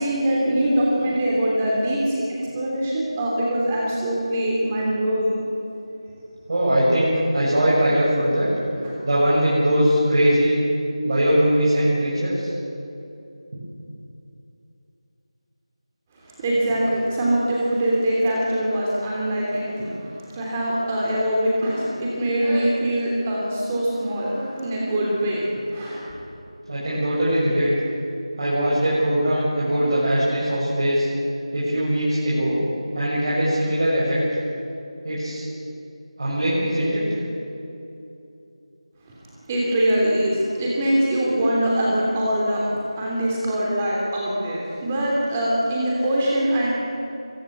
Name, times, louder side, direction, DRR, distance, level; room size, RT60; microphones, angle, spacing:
voice 1, 0.0-5.4 8.8-8.9 16.2-26.1 39.5-42.7 43.0-46.8, right 1 dB, 15° right, -4 dB, 3.0 m, -23 dB
voice 2, 6.5-8.5 9.0-10.6 11.0-12.5 26.7-27.7 28.4-31.1 31.5-32.6 32.9-34.4 35.0-35.4 36.2-37.0, equal, 50° right, -9 dB, 7.3 m, -21 dB
23.5 x 16.0 x 8.4 m, 2.8 s
figure-of-eight pair, 170°, 3 cm